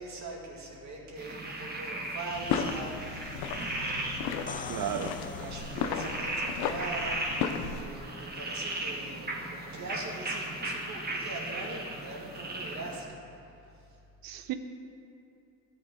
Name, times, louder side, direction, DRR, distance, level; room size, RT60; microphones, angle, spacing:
voice 1, 0.0-4.9 5.2-13.2 13.7-14.0, right 2 dB, 45° right, -2 dB, 2.2 m, -42 dB
sound 1, 1.2-13.0, right 2 dB, 25° right, 1.6 m, -37 dB
sound 2, 2.3-7.8, left 7 dB, 80° left, 0.7 m, -35 dB
sound 3, 4.3-6.2 9.9-10.0, left 6 dB, 25° left, 0.4 m, -43 dB
voice 2, 4.7-5.2 14.2-14.5, right 10 dB, 65° right, 8 dB, 0.8 m, -33 dB
12.5 x 6.3 x 3.8 m, 2.7 s
supercardioid pair, 75°, 38 cm